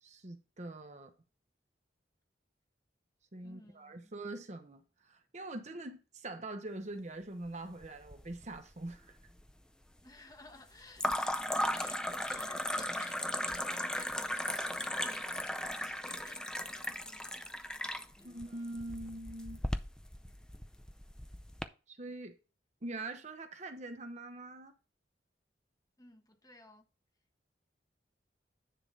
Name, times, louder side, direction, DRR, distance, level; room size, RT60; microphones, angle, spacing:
voice 1, 0.0-1.1 3.3-9.2 18.2-19.6 21.9-22.4 22.8-24.7, right 2 dB, 40° right, 0.9 m, -43 dB
voice 2, 3.4-4.1 10.0-17.5 18.2-18.4 26.0-26.9, left 2 dB, 20° left, 1.3 m, -56 dB
sound 1, 7.8-8.6 8.9-9.5 11.0-21.7, left 1 dB, 5° left, 0.5 m, -37 dB
10.0 x 3.6 x 5.4 m
head